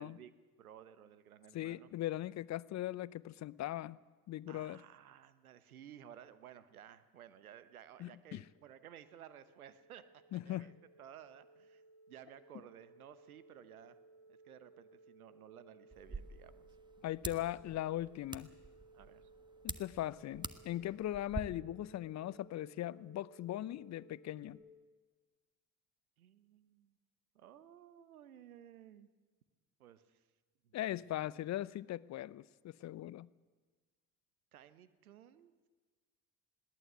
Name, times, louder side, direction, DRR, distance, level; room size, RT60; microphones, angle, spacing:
voice 1, 0.0-1.9 4.5-10.7 11.0-14.0 14.3-16.7 18.9-19.3 26.2-27.0 27.3-29.1 29.8-30.2 30.6-30.7 31.2-31.4 34.5-35.5, right 10 dB, 85° right, 1.1 m, -56 dB
voice 2, 1.5-4.0 4.3-4.8 8.0-8.4 10.3-10.7 17.0-18.5 19.6-24.6 30.7-33.3, left 14 dB, 40° left, 0.6 m, -39 dB
sound 1, 7.6-24.5, right 3 dB, 70° right, 5.4 m, -62 dB
sound 2, 15.9-21.4, right 3 dB, 10° right, 1.2 m, -47 dB
21.0 x 17.0 x 8.1 m
hypercardioid pair, 55°, 42 cm